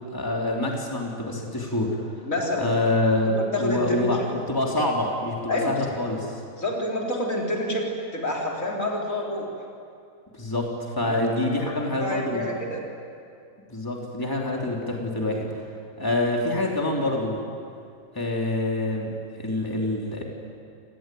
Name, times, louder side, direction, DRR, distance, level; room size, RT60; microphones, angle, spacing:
voice 1, 0.1-2.0 2.6-6.2 10.3-12.4 13.7-15.6 16.0-17.4 18.1-20.2, left 1 dB, 15° left, -1 dB, 3.4 m, -26 dB
voice 2, 2.2-2.7 3.2-4.3 5.5-5.8 6.6-9.5 11.0-11.3 11.8-12.8, left 1 dB, 70° left, -1 dB, 4.4 m, -28 dB
28.5 x 18.5 x 9.3 m, 2.5 s
omnidirectional pair, 1.4 m